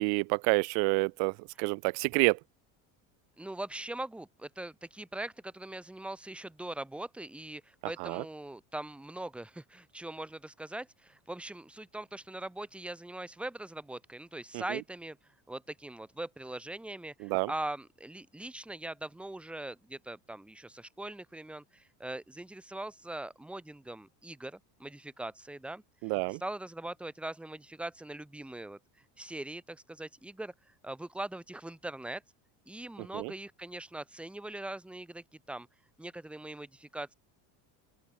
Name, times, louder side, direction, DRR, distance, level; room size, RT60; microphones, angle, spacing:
voice 1, 0.0-2.4 8.0-8.2 14.5-14.8 17.2-17.5 26.0-26.4 33.1-33.3, right 39 dB, 65° right, 0.6 m, -28 dB
voice 2, 3.4-32.2 32.7-35.7 36.0-37.1, right 1 dB, 5° right, 1.2 m, -41 dB
open air
cardioid pair, 150°, 42 cm